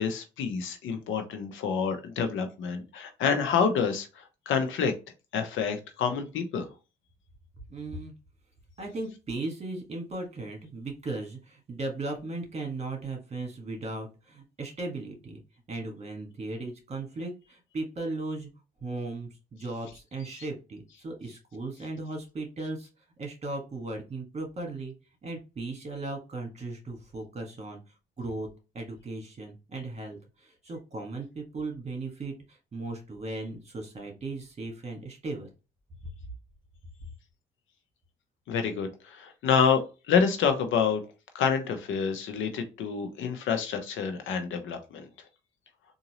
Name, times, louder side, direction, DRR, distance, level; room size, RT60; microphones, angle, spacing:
voice 1, 0.0-4.9 5.3-6.7 38.5-39.8 40.1-41.0 41.3-45.1, left 6 dB, 80° left, 7 dB, 0.8 m, -28 dB
voice 2, 7.7-8.1 8.8-15.4 15.7-18.5 18.8-22.9 23.2-24.9 25.2-27.8 28.2-28.5 28.7-35.5, right 2 dB, 35° right, 2 dB, 1.7 m, -37 dB
3.9 x 2.6 x 3.0 m, 0.30 s
cardioid pair, 90°, 20 cm